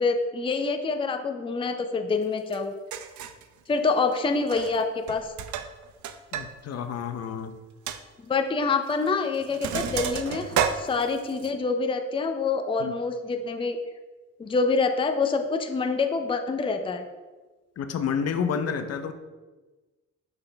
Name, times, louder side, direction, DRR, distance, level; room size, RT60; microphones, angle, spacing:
voice 1, 0.0-2.7 3.7-5.3 8.2-13.8 14.4-17.0, left 4 dB, 15° left, 6 dB, 0.5 m, -26 dB
Sink (filling or washing), 2.5-2.6 2.9-3.4 4.4-4.8 5.1-6.5 6.8-6.9 7.3-7.4 7.9-8.0 8.9-9.1 9.3-11.5, right 8 dB, 75° right, 0.6 m, -31 dB
voice 2, 6.3-7.5 12.8-12.9 17.8-19.1, left 7 dB, 55° left, 8 dB, 0.7 m, -29 dB
5.8 x 5.7 x 3.4 m, 1.2 s
cardioid pair, 90°, 30 cm